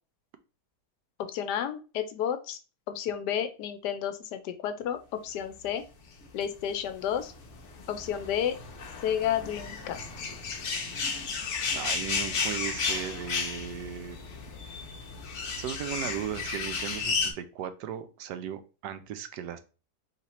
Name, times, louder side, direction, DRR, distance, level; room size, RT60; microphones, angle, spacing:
voice 1, 1.2-2.6 2.9-5.8 6.3-7.3 7.9-8.6 9.0-10.0, left 9 dB, 85° left, 9 dB, 1.2 m, -31 dB
sound 1, 6.2-17.3, left 5 dB, 55° left, 1.0 m, -33 dB
voice 2, 11.7-14.4 15.6-19.6, right 9 dB, 80° right, 10 dB, 1.2 m, -37 dB
3.9 x 3.0 x 4.1 m, 0.33 s
omnidirectional pair, 1.8 m